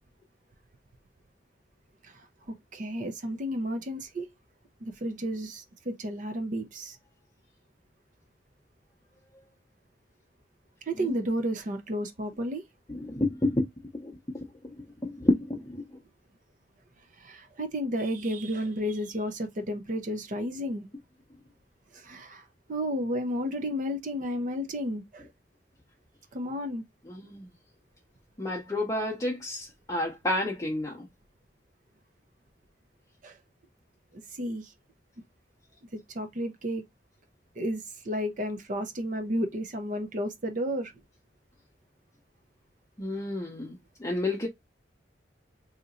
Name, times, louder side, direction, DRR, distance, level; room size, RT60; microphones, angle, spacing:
voice 1, 2.5-4.3 4.8-7.0 10.9-12.6 17.2-20.9 21.9-22.4 22.7-25.3 26.3-26.8 33.2-33.4 34.1-34.7 35.9-36.8 37.6-40.9, equal, 45° right, 0.6 m, -32 dB
voice 2, 12.9-13.7 14.0-14.1 15.0-15.8 27.1-27.5 28.4-31.0 43.0-43.8 44.0-44.5, left 1 dB, 20° left, 0.6 m, -29 dB
3.9 x 2.8 x 2.5 m
head